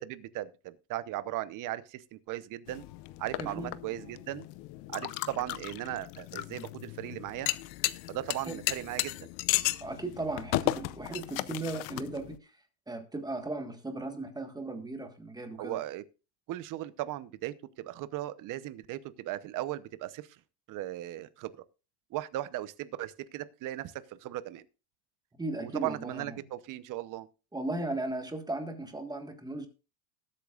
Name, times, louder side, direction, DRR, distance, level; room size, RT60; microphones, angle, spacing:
voice 1, 0.0-2.8 3.2-4.5 4.9-7.5 8.1-9.3 15.6-16.0 16.5-20.4 20.7-21.5 22.1-24.6 25.6-27.3, right 14 dB, 45° right, 0.9 m, -37 dB
sound 1, 2.7-12.4, left 18 dB, 70° left, 0.8 m, -35 dB
voice 2, 3.4-3.8 8.5-8.6 9.8-12.5 12.9-15.8 25.4-26.4 27.5-29.7, right 2 dB, 10° right, 1.5 m, -36 dB
19.5 x 8.5 x 2.4 m
supercardioid pair, 135°, 45 cm